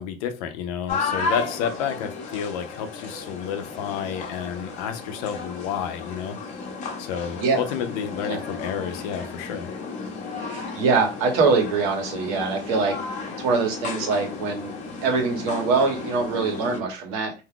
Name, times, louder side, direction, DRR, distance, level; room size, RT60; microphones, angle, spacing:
voice 1, 0.0-6.4 7.0-9.8, left 8 dB, 85° left, 8 dB, 0.6 m, -30 dB
sound 1, 0.9-16.8, left 4 dB, 40° left, 0.8 m, -34 dB
voice 2, 10.3-14.7 15.0-17.3, right 4 dB, 75° right, 1 dB, 1.3 m, -24 dB
2.7 x 2.3 x 3.7 m, 0.31 s
supercardioid pair, 125°, 18 cm